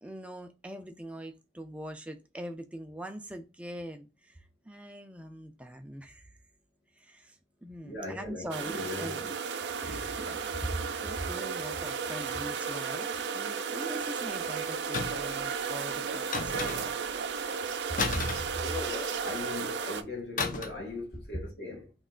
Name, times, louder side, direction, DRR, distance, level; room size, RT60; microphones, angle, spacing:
voice 1, 0.0-4.3 4.7-6.2 7.0-7.4 7.6-9.3 9.8-16.9 17.9-18.3 18.6-18.7 21.3-21.4, right 1 dB, 5° right, 0.4 m, -41 dB
voice 2, 7.8-9.3 18.6-21.9, left 2 dB, 75° left, 1.4 m, -39 dB
sound 1, 8.5-20.0, right 6 dB, 85° right, 0.5 m, -34 dB
sound 2, 14.9-15.4 16.3-17.1 18.0-19.2 20.4-20.9 21.1-21.4, left 3 dB, 50° left, 0.5 m, -33 dB
3.1 x 3.1 x 3.7 m
head